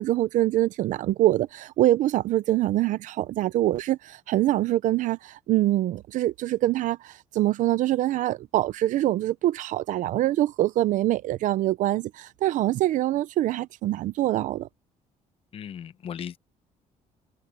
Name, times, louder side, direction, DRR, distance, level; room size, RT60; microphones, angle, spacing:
voice 1, 0.0-14.7, right 14 dB, 65° right, 0.6 m, -24 dB
voice 2, 15.5-16.4, left 8 dB, 40° left, 0.8 m, -36 dB
cardioid pair, 170°, 14 cm